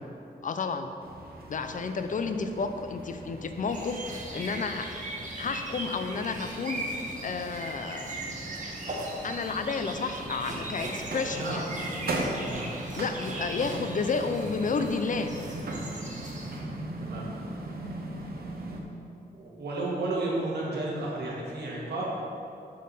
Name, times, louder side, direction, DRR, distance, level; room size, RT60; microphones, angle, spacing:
voice 1, 0.4-0.9 1.5-5.0 5.4-8.2 9.2-11.7 12.9-15.3, left 4 dB, 50° left, 7 dB, 0.5 m, -31 dB
sound 1, 1.0-18.8, right 2 dB, 65° right, 0.9 m, -39 dB
sound 2, 3.7-16.6, right 1 dB, 50° right, 1.2 m, -38 dB
voice 2, 19.3-22.0, right 2 dB, 85° right, -4 dB, 1.6 m, -32 dB
7.4 x 4.3 x 5.5 m, 2.7 s
wide cardioid pair, 140°, 17 cm